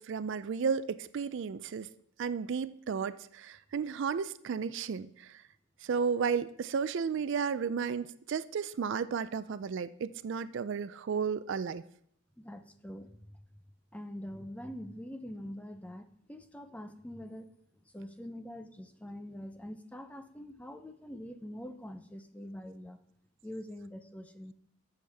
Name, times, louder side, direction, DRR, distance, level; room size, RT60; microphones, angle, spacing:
voice 1, 0.0-1.9 2.2-5.4 5.8-11.8, right 6 dB, 55° right, 14 dB, 0.3 m, -33 dB
voice 2, 12.4-13.4 13.9-17.5 17.9-23.0 23.4-24.5, equal, 5° left, 8 dB, 0.5 m, -44 dB
14.0 x 7.1 x 3.4 m, 0.69 s
head